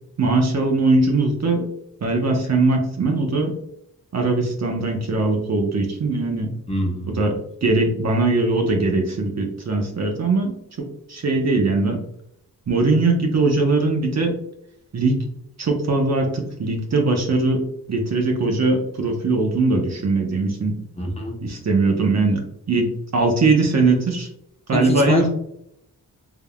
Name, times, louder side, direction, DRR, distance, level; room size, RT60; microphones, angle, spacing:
voice 1, 0.2-1.6 2.0-3.5 4.1-6.5 7.1-7.3 7.6-10.5 10.8-12.0 12.7-14.3 14.9-15.2 15.6-17.6 17.9-20.8 21.4-22.4 22.7-24.3 24.7-25.3, right 3 dB, 45° right, 2 dB, 0.8 m, -20 dB
voice 2, 6.7-7.2 21.0-21.4 24.7-25.3, left 1 dB, 15° left, -2 dB, 0.9 m, -24 dB
3.6 x 3.4 x 2.2 m, 0.75 s
cardioid pair, 70°, 36 cm